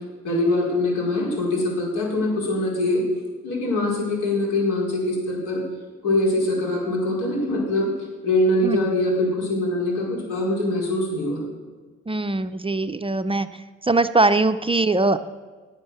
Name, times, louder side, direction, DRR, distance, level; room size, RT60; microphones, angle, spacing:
voice 1, 0.2-3.0 3.4-5.6 6.0-7.9 8.2-11.4, left 1 dB, 85° left, -2 dB, 4.9 m, -23 dB
voice 2, 12.1-13.5 13.8-15.2, right 2 dB, 20° right, 10 dB, 0.5 m, -21 dB
19.0 x 6.4 x 6.7 m, 1.4 s
cardioid pair, 90°, 30 cm